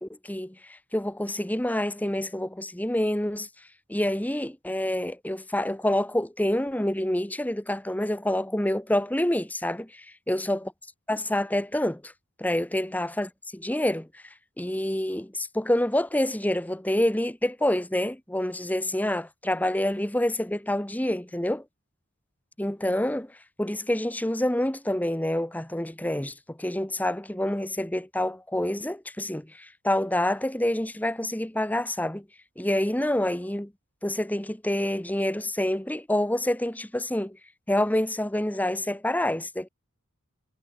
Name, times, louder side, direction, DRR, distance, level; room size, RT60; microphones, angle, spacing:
voice 1, 0.0-10.7 11.1-12.1 12.4-21.6 22.6-32.3 32.6-33.7 34.0-37.4 37.7-39.7, left 1 dB, 5° left, 1.0 m, -27 dB
head